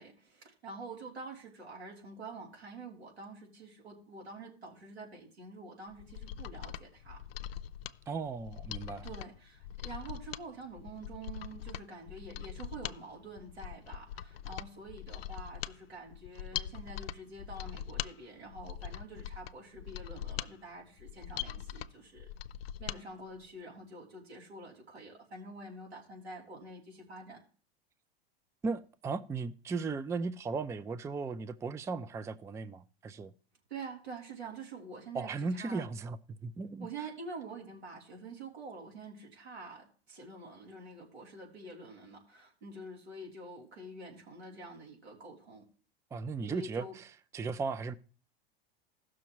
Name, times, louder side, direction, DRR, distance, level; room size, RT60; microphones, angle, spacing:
voice 1, 0.0-7.2 9.0-22.3 22.8-27.4 33.7-35.9 36.8-45.6 46.5-47.0, right 3 dB, 90° right, 3.2 m, -47 dB
Mechanisms, 5.9-23.0 23.4-23.5, left 11 dB, 70° left, 0.5 m, -42 dB
voice 2, 8.1-9.1 28.6-33.3 35.1-36.2 36.4-36.9 46.1-47.1 47.3-48.0, right 4 dB, 10° right, 0.4 m, -36 dB
16.0 x 6.2 x 3.0 m
hypercardioid pair, 90°, 31 cm